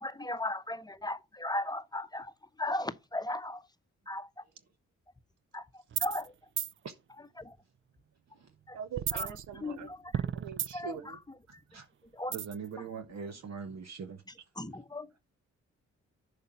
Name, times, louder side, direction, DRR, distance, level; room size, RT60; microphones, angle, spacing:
voice 1, 0.0-2.3 2.6-3.6 4.1-4.3 5.5-5.6 6.0-6.3 8.7-8.8 9.1-9.4 9.6-10.0 10.7-11.2 12.2-12.3 14.6-15.1, left 2 dB, 15° left, 0.8 m, -36 dB
sound 1, 5.9-6.3 6.6-6.7 9.0-9.8 10.1-11.0 12.3-12.7, right 9 dB, 40° right, 0.5 m, -34 dB
voice 2, 8.7-9.9 10.4-11.2, right 7 dB, 80° right, 0.8 m, -42 dB
voice 3, 12.3-14.2, right 6 dB, 60° right, 1.1 m, -41 dB
6.8 x 5.2 x 5.7 m
supercardioid pair, 45°, 30 cm